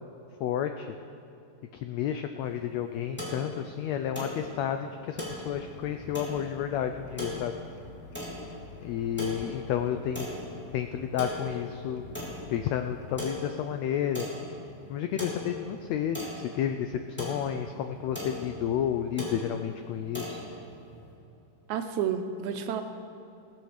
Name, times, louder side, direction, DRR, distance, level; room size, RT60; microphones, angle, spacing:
voice 1, 0.4-0.9 1.8-7.5 8.8-10.3 10.7-12.0 12.5-14.3 14.9-20.4, left 9 dB, 85° left, 7 dB, 1.5 m, -31 dB
sound 1, 2.4-21.1, left 1 dB, 5° left, 2.6 m, -40 dB
sound 2, 5.1-13.3, left 6 dB, 65° left, 1.9 m, -49 dB
voice 2, 21.7-22.8, right 8 dB, 75° right, 6 dB, 1.9 m, -30 dB
18.5 x 7.8 x 6.5 m, 2.7 s
omnidirectional pair, 3.7 m